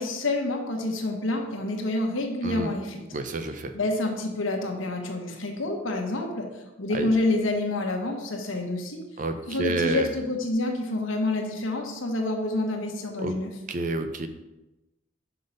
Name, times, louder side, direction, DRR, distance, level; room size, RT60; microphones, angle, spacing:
voice 1, 0.0-3.1 3.7-9.0 9.5-13.5, left 2 dB, 80° left, 2 dB, 1.2 m, -28 dB
voice 2, 3.1-3.7 6.9-7.1 9.2-10.1 13.2-13.3 13.7-14.3, right 2 dB, 40° right, 8 dB, 0.6 m, -29 dB
6.0 x 5.4 x 5.1 m, 1.0 s
head